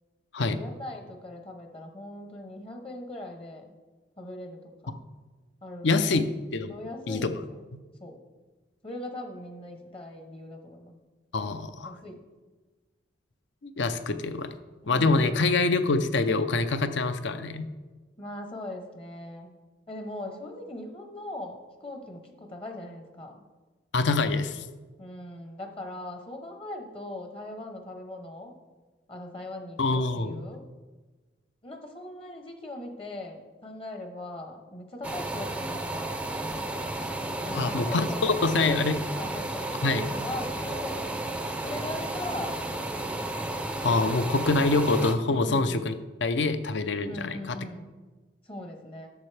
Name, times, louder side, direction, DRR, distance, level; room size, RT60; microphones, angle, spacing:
voice 1, 0.5-3.6 4.2-5.0 5.6-6.2 6.7-7.4 8.0-8.2 8.8-11.0 11.8-12.2 14.8-15.6 18.2-19.5 19.9-23.4 25.0-28.5 29.1-30.6 31.6-36.6 37.4-38.8 39.2-41.1 41.6-42.9 45.3-45.8 47.1-47.9 48.5-49.1, left 1 dB, 30° left, 4 dB, 0.8 m, -40 dB
voice 2, 5.8-6.7 7.1-7.4 11.3-12.0 13.6-14.5 14.9-17.7 23.9-24.6 29.8-30.5 37.5-39.0 39.8-40.0 43.8-45.9 46.2-47.6, left 3 dB, 70° left, 10 dB, 0.6 m, -25 dB
sound 1, 35.0-45.1, right 1 dB, 5° right, 0.4 m, -33 dB
12.0 x 7.1 x 3.3 m, 1.3 s
head